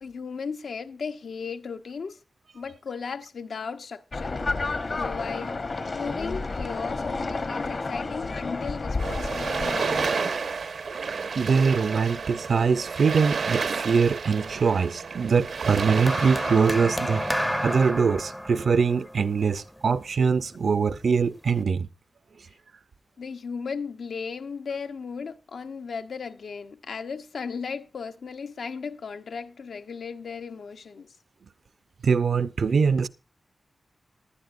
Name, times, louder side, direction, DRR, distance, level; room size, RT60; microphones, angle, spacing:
voice 1, 0.0-2.2 2.5-4.4 5.0-5.6 5.9-10.6 23.2-31.1, left 5 dB, 85° left, 0.8 m, -36 dB
sound 1, 4.1-10.1, left 3 dB, 45° left, 0.8 m, -31 dB
sound 2, 9.0-17.9, right 5 dB, 85° right, 1.1 m, -31 dB
voice 2, 11.4-17.3 17.6-21.9 32.0-33.1, right 5 dB, 70° right, 0.6 m, -23 dB
sound 3, 15.8-20.2 21.1-21.4, equal, ahead, 0.5 m, -31 dB
18.5 x 11.0 x 2.5 m
wide cardioid pair, 135°, 0 cm